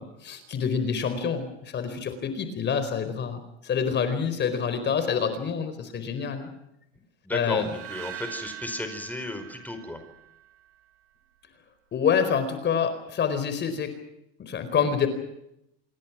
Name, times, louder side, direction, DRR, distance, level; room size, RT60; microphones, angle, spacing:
voice 1, 0.0-6.5 7.3-7.7 11.9-13.9 14.4-15.1, left 6 dB, 35° left, 10 dB, 4.5 m, -27 dB
voice 2, 7.2-10.0 14.7-14.9, left 1 dB, 5° left, 7 dB, 4.9 m, -34 dB
sound 1, 7.5-10.7, right 12 dB, 50° right, 4.4 m, -42 dB
28.0 x 22.0 x 6.1 m, 0.81 s
supercardioid pair, 120°, 30 cm